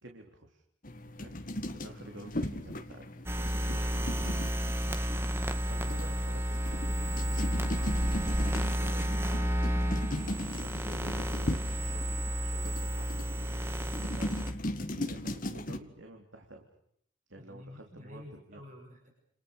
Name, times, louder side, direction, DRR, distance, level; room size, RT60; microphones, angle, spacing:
voice 1, 0.0-0.6 1.0-1.4 1.7-3.1 4.9-7.7 8.2-9.7 10.2-16.7 17.3-18.6, right 1 dB, 70° right, 2 dB, 3.4 m, -50 dB
sound 1, 0.8-15.8, left 1 dB, 45° left, 1.8 m, -38 dB
sound 2, 3.3-14.5, equal, 10° right, 1.8 m, -31 dB
voice 2, 3.6-4.5 17.4-19.1, left 1 dB, 40° right, 1 dB, 7.0 m, -50 dB
29.0 x 28.0 x 6.7 m, 0.69 s
head